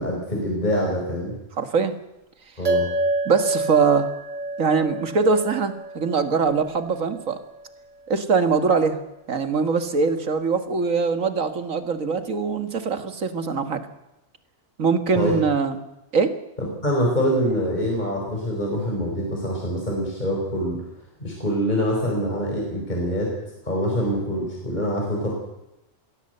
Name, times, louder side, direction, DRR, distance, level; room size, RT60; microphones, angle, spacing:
voice 1, 0.0-1.4 2.6-2.9 15.1-15.3 16.6-20.9 21.2-23.3 23.6-25.3, equal, 35° left, -1 dB, 4.9 m, -25 dB
voice 2, 1.6-1.9 3.3-4.1 4.6-7.4 8.1-9.0 9.3-13.8 14.8-15.8 16.1-16.4, right 5 dB, 80° right, 9 dB, 2.1 m, -22 dB
sound 1, 2.6-7.3, right 1 dB, 65° right, 3.2 m, -28 dB
22.0 x 16.5 x 8.0 m, 0.93 s
omnidirectional pair, 1.4 m